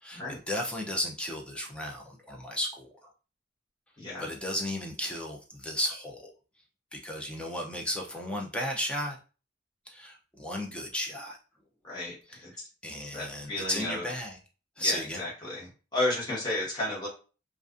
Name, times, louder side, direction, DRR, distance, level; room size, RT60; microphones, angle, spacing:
voice 1, 0.0-2.9 4.2-6.3 6.9-9.2 9.9-11.4 12.8-14.4 14.8-15.2, left 1 dB, 5° left, -1 dB, 0.4 m, -34 dB
voice 2, 4.0-4.3 11.8-12.7 13.1-14.0 14.8-17.1, left 1 dB, 20° left, -6 dB, 1.1 m, -33 dB
2.4 x 2.3 x 2.4 m, 0.35 s
head